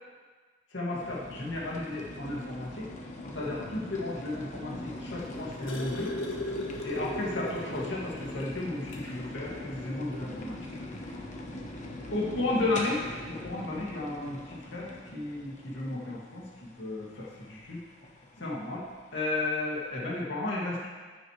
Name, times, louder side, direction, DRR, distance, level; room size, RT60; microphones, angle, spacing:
voice 1, 0.7-2.9 3.3-6.1 6.8-10.6 12.1-13.0 13.3-17.8 18.4-18.8 19.1-20.9, left 2 dB, 60° left, -5 dB, 2.3 m, -33 dB
sound 1, 0.9-20.3, left 1 dB, 35° left, 1.1 m, -42 dB
sound 2, 5.1-8.0 8.4-8.5 8.9-9.1 10.2-10.3, left 1 dB, 80° left, 1.4 m, -36 dB
14.5 x 6.6 x 3.3 m, 1.4 s
head